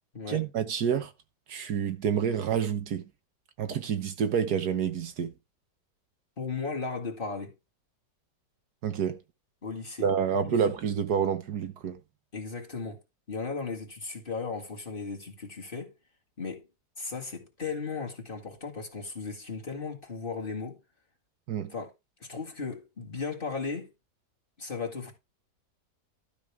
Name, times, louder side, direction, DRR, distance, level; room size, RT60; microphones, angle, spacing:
voice 1, 0.3-1.1 1.5-3.0 3.6-5.3 8.8-9.2 10.0-12.0 21.5-21.7, right 7 dB, 70° right, 1.5 m, -28 dB
voice 2, 6.4-7.5 9.6-10.1 10.4-10.6 12.3-13.0 13.3-15.9 16.4-16.7 17.0-20.8 21.7-21.9 22.2-23.9 24.6-25.1, left 4 dB, 30° left, 2.1 m, -36 dB
12.5 x 6.7 x 3.5 m
omnidirectional pair, 1.8 m